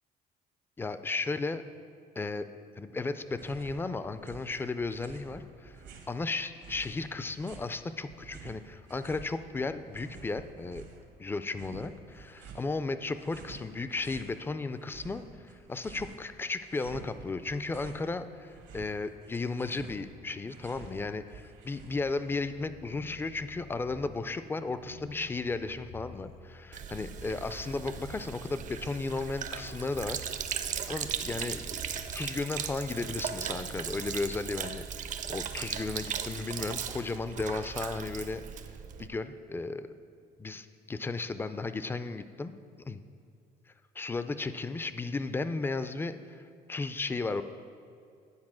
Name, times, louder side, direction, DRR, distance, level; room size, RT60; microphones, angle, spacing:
voice 1, 0.8-1.6 2.2-2.5 2.8-10.8 11.2-30.6 30.9-34.8 35.3-38.4 39.0-39.9 40.4-42.6 42.9-43.0 44.0-46.4 46.7-47.4, left 3 dB, 15° left, 11 dB, 0.3 m, -35 dB
sound 1, 3.3-3.8 4.1-6.2 6.6-9.3 9.6-11.1 11.5-12.7 13.1-14.3 14.7-16.3 16.6-18.1 18.4-22.2, right 5 dB, 85° right, 1.3 m, -49 dB
sound 2, 22.1-34.6, left 5 dB, 85° left, 0.6 m, -52 dB
Sink (filling or washing), 26.7-39.1, right 8 dB, 50° right, 0.5 m, -37 dB
9.7 x 4.2 x 6.1 m, 2.3 s
cardioid pair, 110°, 17 cm